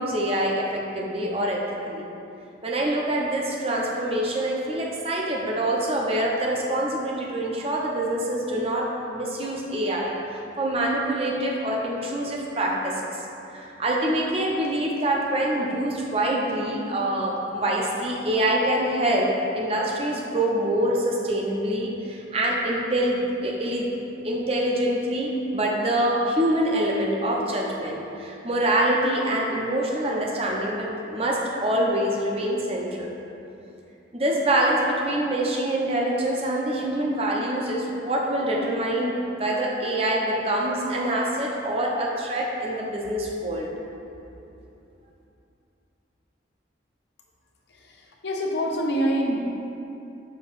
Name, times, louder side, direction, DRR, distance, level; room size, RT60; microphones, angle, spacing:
voice 1, 0.0-2.0 2.6-13.2 13.5-23.9 24.2-33.1 34.1-43.7, right 1 dB, 30° right, -2 dB, 0.7 m, -25 dB
voice 2, 47.7-49.4, equal, 65° left, -1 dB, 0.7 m, -26 dB
6.4 x 2.9 x 5.5 m, 2.8 s
head